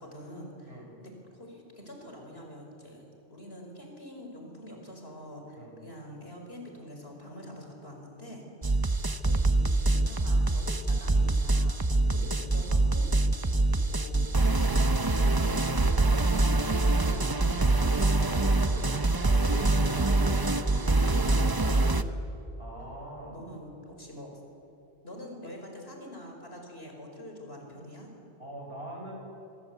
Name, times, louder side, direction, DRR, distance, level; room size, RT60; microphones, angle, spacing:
voice 1, 0.0-8.5 8.8-8.9 9.3-11.8 12.1-13.1 13.6-15.6 16.5-18.5 18.7-18.9 19.2-22.2 23.3-24.3 25.0-28.1, left 1 dB, 65° left, 2 dB, 5.2 m, -45 dB
sound 1, 8.6-22.0, right 2 dB, 25° right, 0.7 m, -25 dB
voice 2, 11.9-12.2 18.6-18.9 20.6-20.9 22.6-23.4 28.4-29.1, right 1 dB, 65° right, 0 dB, 6.7 m, -43 dB
26.0 x 23.5 x 8.2 m, 2.9 s
omnidirectional pair, 1.1 m